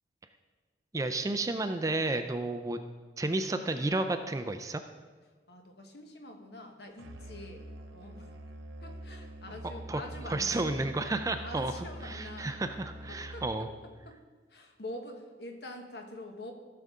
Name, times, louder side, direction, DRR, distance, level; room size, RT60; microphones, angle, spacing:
voice 1, 0.9-2.8 3.2-4.8 9.9-10.0 10.3-11.7 12.0-13.7, right 2 dB, 20° right, 8 dB, 0.4 m, -31 dB
voice 2, 5.5-8.3 8.8-10.9 11.4-12.6 13.1-13.7 14.0-14.2 14.5-16.5, left 1 dB, 60° left, 4 dB, 1.1 m, -45 dB
Musical instrument, 7.0-13.8, right 1 dB, 85° right, 0.9 m, -45 dB
15.5 x 6.8 x 3.7 m, 1.4 s
head